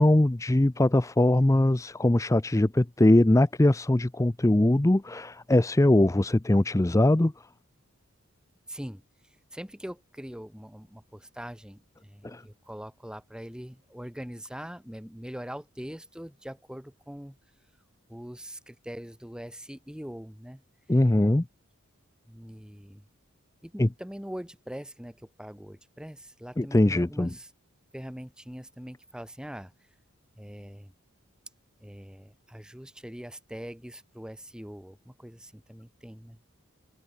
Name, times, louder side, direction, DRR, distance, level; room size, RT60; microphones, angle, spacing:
voice 1, 0.0-7.3 12.2-12.4 20.9-21.4 23.8-23.9 26.6-27.3, left 1 dB, 15° left, 0.5 m, -21 dB
voice 2, 8.7-9.0 9.5-17.4 18.1-20.6 22.3-23.0 23.6-27.5 27.9-29.7 30.4-30.9 31.8-36.4, equal, 5° right, 1.0 m, -42 dB
head